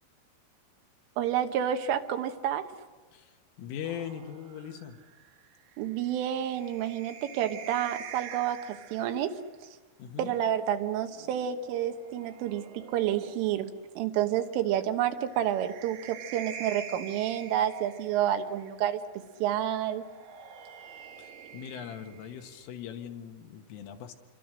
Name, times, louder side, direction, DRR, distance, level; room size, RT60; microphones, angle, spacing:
voice 1, 1.2-2.7 5.8-9.4 10.2-19.0 19.4-20.0, right 10 dB, 80° right, 7 dB, 3.8 m, -29 dB
voice 2, 3.1-5.0 10.0-10.3 21.2-24.1, left 9 dB, 80° left, 5 dB, 4.1 m, -40 dB
sound 1, 3.8-9.4 10.7-13.7 15.1-18.6 19.8-22.7, right 7 dB, 60° right, 2.6 m, -47 dB
27.5 x 23.5 x 6.5 m, 1.3 s
omnidirectional pair, 5.7 m